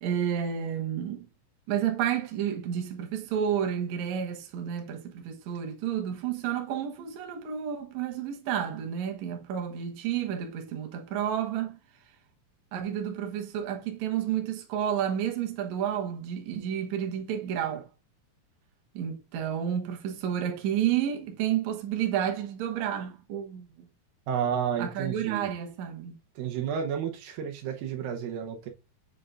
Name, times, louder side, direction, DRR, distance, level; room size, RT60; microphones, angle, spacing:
voice 1, 0.0-1.3 1.7-11.8 12.7-17.9 18.9-23.9 24.8-26.2, right 9 dB, 65° right, 2.2 m, -31 dB
voice 2, 24.3-25.5 26.4-28.7, right 8 dB, 80° right, 2.6 m, -31 dB
7.6 x 6.4 x 2.5 m
omnidirectional pair, 4.1 m